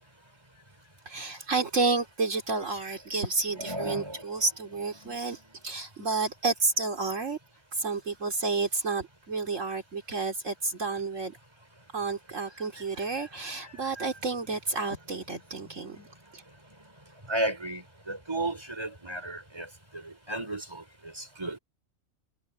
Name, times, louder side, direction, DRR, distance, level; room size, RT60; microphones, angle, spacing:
voice 1, 1.0-7.4 7.7-11.4 11.9-16.1 16.3-16.4, right 3 dB, 70° right, 3.3 m, -30 dB
voice 2, 3.5-4.2 5.0-5.2 17.3-19.7 20.0-20.8 21.2-21.6, right 1 dB, 20° right, 5.0 m, -33 dB
omnidirectional pair, 1.3 m